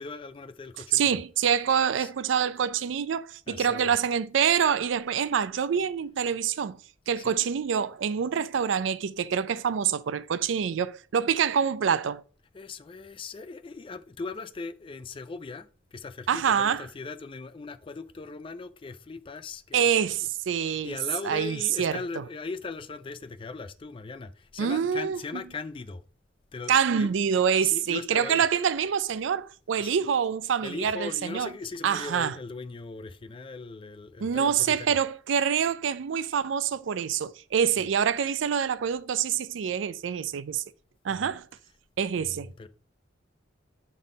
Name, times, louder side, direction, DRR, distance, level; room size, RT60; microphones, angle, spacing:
voice 1, 0.0-1.2 1.9-2.1 3.5-3.9 7.2-7.5 12.5-20.2 20.5-26.0 26.5-27.1 27.6-28.5 29.8-30.0 30.6-35.0 41.1-41.3 42.2-42.7, left 4 dB, 30° left, 0.4 m, -39 dB
voice 2, 0.9-6.8 7.1-12.2 16.3-16.8 19.7-20.9 21.2-22.0 24.6-25.2 26.7-31.5 31.8-32.3 34.2-40.6 41.0-41.5 42.0-42.5, right 7 dB, 75° right, 0.4 m, -26 dB
5.6 x 3.7 x 4.9 m
head